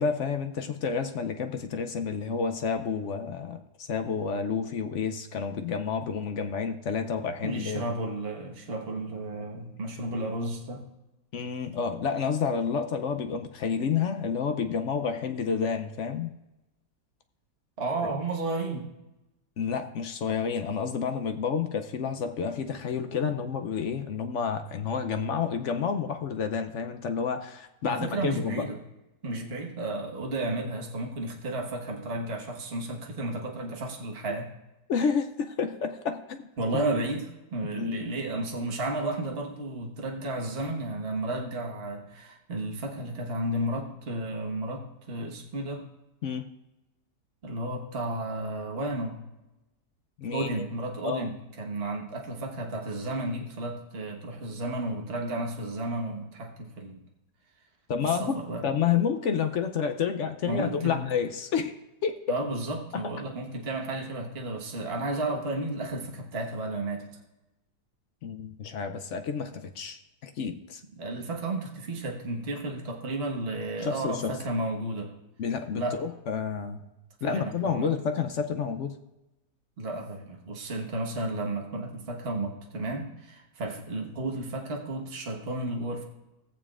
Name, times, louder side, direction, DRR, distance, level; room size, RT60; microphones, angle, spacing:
voice 1, 0.0-7.9 11.3-16.3 18.0-18.1 19.6-28.6 34.9-36.5 37.7-38.1 46.2-46.5 50.2-50.6 51.0-51.3 57.9-61.7 62.0-62.2 62.9-63.0 68.2-70.8 73.8-74.3 75.4-76.8 77.2-79.0, left 6 dB, 65° left, 7 dB, 0.7 m, -30 dB
voice 2, 7.4-10.8 17.8-18.9 27.9-28.8 29.2-34.5 36.6-45.9 47.4-49.2 50.3-57.0 58.0-58.6 60.5-61.1 62.3-67.1 71.0-75.1 75.7-76.0 77.2-77.9 79.8-86.0, right 2 dB, 40° right, 0 dB, 1.5 m, -33 dB
19.0 x 7.2 x 2.4 m, 0.99 s
omnidirectional pair, 1.8 m